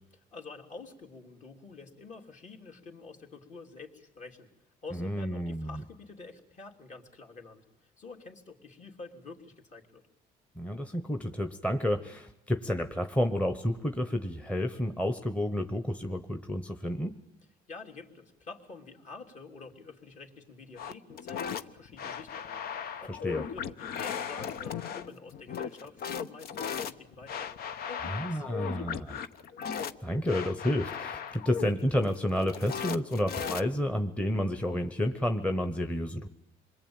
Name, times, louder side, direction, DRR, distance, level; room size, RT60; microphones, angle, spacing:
voice 1, 0.3-4.5 4.8-10.0 17.7-29.2, left 4 dB, 45° left, 1 dB, 3.3 m, -48 dB
voice 2, 4.9-5.8 10.6-17.2 23.1-23.4 28.1-29.2 30.0-36.3, left 1 dB, 5° left, 7 dB, 1.1 m, -30 dB
sound 1, 20.8-34.0, left 7 dB, 65° left, 1.0 m, -37 dB
27.0 x 21.5 x 8.9 m, 0.80 s
cardioid pair, 110°, 17 cm